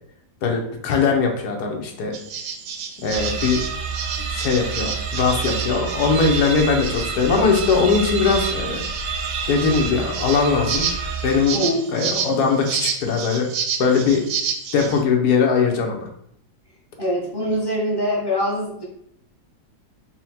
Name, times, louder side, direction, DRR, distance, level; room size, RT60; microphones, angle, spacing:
voice 1, 0.4-2.1 3.0-3.6 4.3-8.8 9.5-10.9 11.2-11.6 11.9-13.5 13.8-14.2 14.7-16.1, left 5 dB, 70° left, 1 dB, 1.3 m, -20 dB
sound 1, 2.1-15.0, right 7 dB, 85° right, 1.2 m, -31 dB
sound 2, 3.1-11.8, right 5 dB, 65° right, 0.8 m, -28 dB
voice 2, 11.5-11.9 17.0-18.8, equal, 20° left, -4 dB, 0.6 m, -23 dB
4.3 x 2.1 x 4.1 m, 0.71 s
omnidirectional pair, 1.8 m